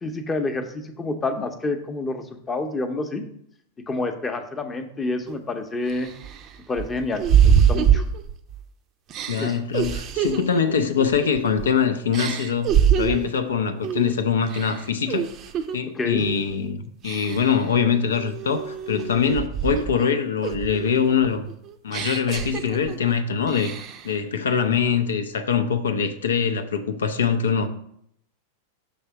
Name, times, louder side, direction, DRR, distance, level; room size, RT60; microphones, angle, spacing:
voice 1, 0.0-3.2 3.9-6.1 6.7-8.0 9.4-9.6 15.9-16.3, left 3 dB, 15° left, 0.7 m, -28 dB
sound 1, 5.3-5.4 5.9-8.6 9.1-11.7 12.1-13.4 13.8-14.1 14.5-15.8 16.2-16.5 17.0-17.6 18.1-20.1 20.4-23.1 23.5-24.1, right 8 dB, 35° right, 0.5 m, -24 dB
voice 2, 9.3-15.3 15.7-21.5 21.8-23.8 24.0-27.7, left 6 dB, 65° left, 0.5 m, -23 dB
6.3 x 3.4 x 5.9 m
figure-of-eight pair, 90°, 0 cm